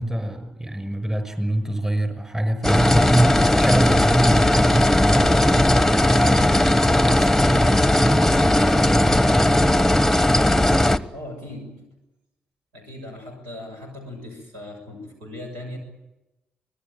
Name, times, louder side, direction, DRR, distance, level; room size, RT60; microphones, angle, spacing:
voice 1, 0.0-9.6, right 1 dB, 15° right, 10 dB, 5.9 m, -25 dB
sound 1, 2.6-11.0, left 1 dB, 5° left, 1.3 m, -18 dB
voice 2, 11.1-11.9 12.7-15.8, left 1 dB, 90° right, 2 dB, 6.7 m, -38 dB
25.0 x 20.0 x 9.3 m, 1.0 s
hypercardioid pair, 40°, 4 cm